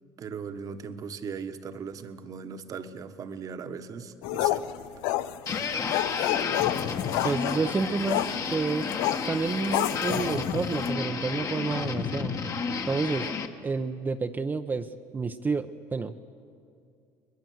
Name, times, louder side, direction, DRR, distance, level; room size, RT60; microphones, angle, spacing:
voice 1, 0.2-4.6, right 6 dB, 45° right, 9 dB, 1.4 m, -38 dB
sound 1, 4.2-10.9, left 14 dB, 85° left, 0.6 m, -30 dB
sound 2, 5.5-13.5, left 5 dB, 40° left, 1.5 m, -31 dB
voice 2, 7.2-8.9 9.3-12.3 12.9-13.3 13.6-16.1, right 4 dB, 25° right, 6 dB, 0.7 m, -30 dB
22.0 x 21.0 x 7.8 m, 2.5 s
supercardioid pair, 100°, 8 cm